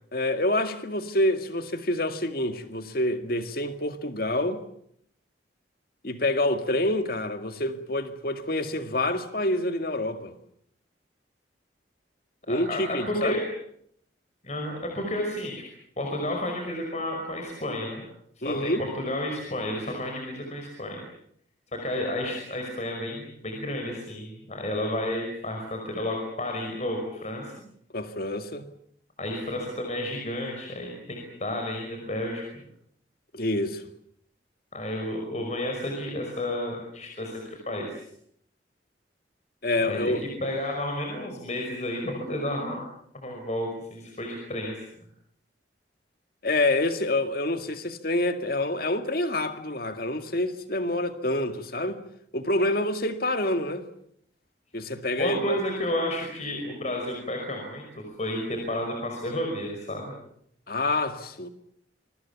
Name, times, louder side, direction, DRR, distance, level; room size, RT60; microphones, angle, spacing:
voice 1, 0.1-4.6 6.0-10.3 12.5-13.4 18.4-18.8 27.9-28.7 33.3-33.8 39.6-40.2 46.4-52.0 52.3-53.9 54.7-55.6 60.7-61.5, left 1 dB, 55° left, 2.1 m, -27 dB
voice 2, 12.5-13.4 14.4-15.6 16.0-18.0 18.4-21.0 21.7-27.5 29.2-32.4 34.7-38.0 39.8-40.1 40.4-42.8 43.1-44.8 55.2-60.2, left 1 dB, 40° left, 5.4 m, -31 dB
27.5 x 23.0 x 7.2 m
head